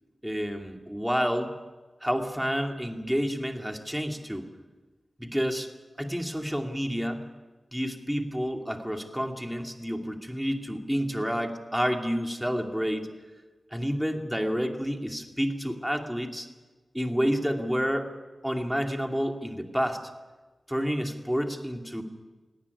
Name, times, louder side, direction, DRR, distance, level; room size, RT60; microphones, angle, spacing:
voice 1, 0.2-1.5 2.0-4.5 5.2-5.7 6.0-7.2 7.7-13.1 13.7-16.5 16.9-18.1 18.4-20.0 20.7-22.0, equal, 5° right, 3 dB, 2.6 m, -29 dB
19.0 x 18.0 x 9.8 m, 1.3 s
wide cardioid pair, 75°, 0 cm